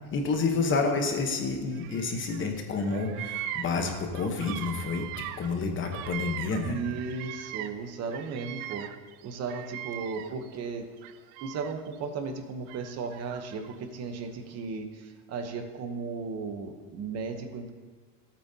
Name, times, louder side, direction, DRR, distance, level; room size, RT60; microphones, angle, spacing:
voice 1, 0.0-5.1 5.4-6.8, left 4 dB, 25° left, 4 dB, 1.0 m, -29 dB
Bird vocalization bird call bird song, 1.7-2.5 2.7-7.8 8.1-10.5 11.0-12.0 12.7-13.8, right 13 dB, 75° right, 0.7 m, -40 dB
voice 2, 6.6-8.9 9.2-10.9 11.4-17.7, right 4 dB, 35° right, 6 dB, 1.0 m, -35 dB
17.0 x 8.6 x 2.8 m, 1.5 s
cardioid pair, 170°, 45 cm